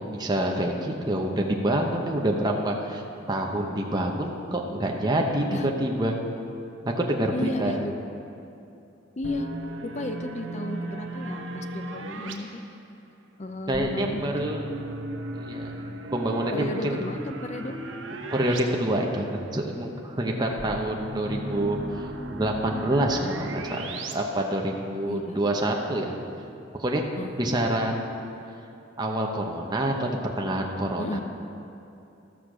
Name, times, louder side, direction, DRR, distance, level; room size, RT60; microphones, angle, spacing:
voice 1, 0.1-3.0 3.3-6.2 6.8-7.8 13.7-14.6 15.4-15.7 16.1-17.0 18.3-21.8 22.3-26.1 26.8-27.0 27.4-28.2 29.0-31.2, right 1 dB, 20° right, 0 dB, 0.9 m, -27 dB
voice 2, 7.3-7.9 9.2-9.5 9.8-12.6 13.4-14.5 16.5-17.8 25.0-25.4 27.2-27.3 31.0-31.2, left 2 dB, 35° left, 7 dB, 0.6 m, -33 dB
sound 1, 9.2-12.3 13.7-18.6 18.9-19.0 20.6-24.1, right 2 dB, 80° right, 1.0 m, -36 dB
14.0 x 6.6 x 6.1 m, 2.8 s
head